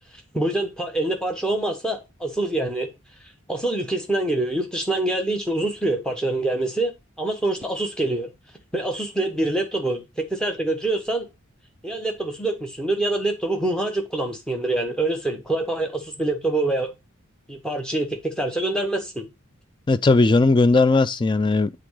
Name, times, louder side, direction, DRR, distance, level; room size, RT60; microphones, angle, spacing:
voice 1, 0.3-2.9 3.5-6.9 7.2-8.3 8.7-11.3 11.8-16.9 17.5-19.2, right 2 dB, 5° left, 1.1 m, -25 dB
voice 2, 19.9-21.8, left 3 dB, 20° left, 0.3 m, -18 dB
7.9 x 3.9 x 4.8 m
head